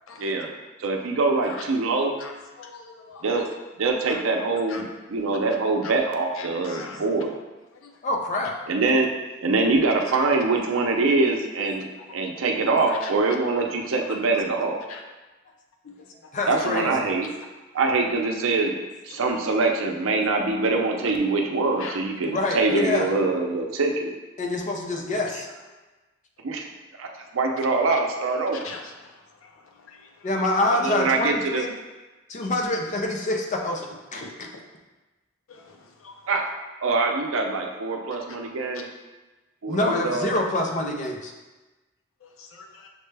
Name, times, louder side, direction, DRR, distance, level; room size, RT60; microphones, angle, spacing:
voice 1, 0.2-0.5 0.8-2.2 3.2-3.5 3.8-7.3 8.7-9.1 9.4-14.8 16.5-17.3 17.7-18.7 19.0-24.1 26.4-26.7 27.0-27.1 27.3-28.6 30.7-31.7 36.3-36.4 36.8-38.9 39.6-40.3, right 3 dB, 85° right, 2 dB, 0.6 m, -24 dB
voice 2, 2.6-3.4 4.1-4.2 4.7-4.8 6.4-7.0 7.8-7.9 13.0-13.1 14.3-14.4 14.9-15.0 19.1-19.2 21.8-22.0 28.6-28.8 29.9-30.0 34.2-34.3 35.5-35.8 36.0-36.1 42.2-42.9, left 4 dB, 90° left, 2 dB, 0.5 m, -41 dB
voice 3, 8.0-8.6 16.3-17.1 22.3-23.1 24.4-25.5 30.2-31.7 32.3-34.5 39.7-41.3, left 2 dB, 40° left, 1 dB, 0.5 m, -26 dB
6.4 x 2.2 x 3.2 m, 1.2 s
head